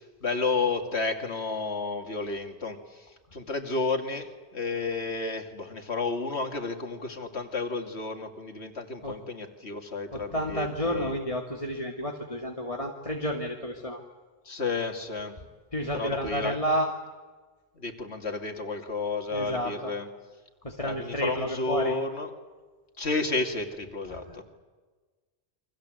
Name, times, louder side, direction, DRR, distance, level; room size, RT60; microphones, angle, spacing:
voice 1, 0.0-11.1 14.4-15.4 15.9-16.6 17.8-20.1 20.8-22.3 23.0-24.4, left 3 dB, 75° left, 4 dB, 2.9 m, -31 dB
voice 2, 10.1-14.0 15.7-16.9 19.3-19.9 20.6-21.9 24.1-24.4, equal, 30° left, 0 dB, 2.2 m, -31 dB
30.0 x 24.0 x 8.0 m, 1.4 s
omnidirectional pair, 1.1 m